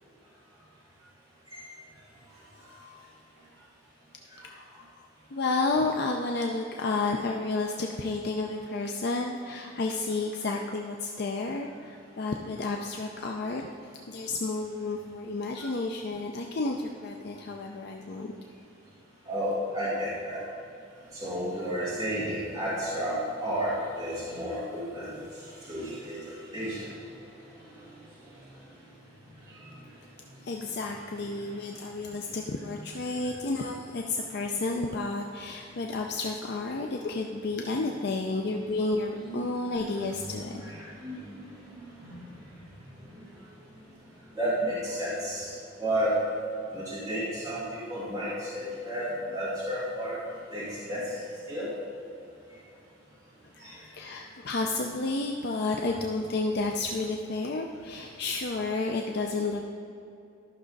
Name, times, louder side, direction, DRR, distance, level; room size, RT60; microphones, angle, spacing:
voice 1, 4.4-4.9 5.3-18.3 30.4-40.6 53.5-59.6, left 3 dB, 55° left, 2 dB, 0.5 m, -31 dB
voice 2, 19.3-20.4 21.1-25.1 25.7-26.1 26.5-26.8 39.2-39.4 40.2-41.2 42.0-42.2 44.4-45.5 45.8-46.1 46.7-50.2 50.5-51.0 51.5-51.7 53.6-53.7, equal, 20° right, -10 dB, 2.4 m, -32 dB
13.0 x 6.1 x 4.0 m, 2.7 s
head